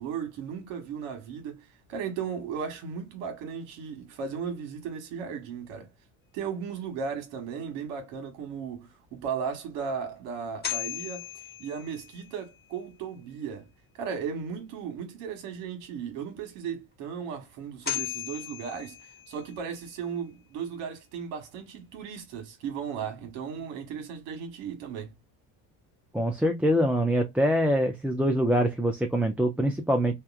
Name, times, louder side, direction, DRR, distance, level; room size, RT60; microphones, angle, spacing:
voice 1, 0.0-5.9 6.3-11.3 11.6-13.7 13.9-25.1, right 6 dB, 80° right, 1.3 m, -36 dB
sound 1, 10.4-12.5 17.5-17.6 17.9-19.8, left 11 dB, 20° left, 1.0 m, -36 dB
voice 2, 26.1-30.1, equal, 5° right, 0.4 m, -24 dB
2.9 x 2.3 x 2.3 m
supercardioid pair, 85°, 45 cm